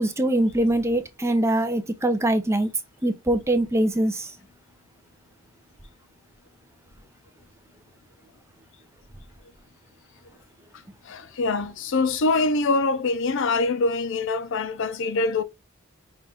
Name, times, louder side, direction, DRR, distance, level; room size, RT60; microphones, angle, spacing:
voice 1, 0.0-2.7 3.0-4.3, right 1 dB, 15° right, 0.5 m, -23 dB
voice 2, 11.1-15.4, left 3 dB, 60° left, 0.5 m, -24 dB
5.6 x 2.5 x 3.3 m
head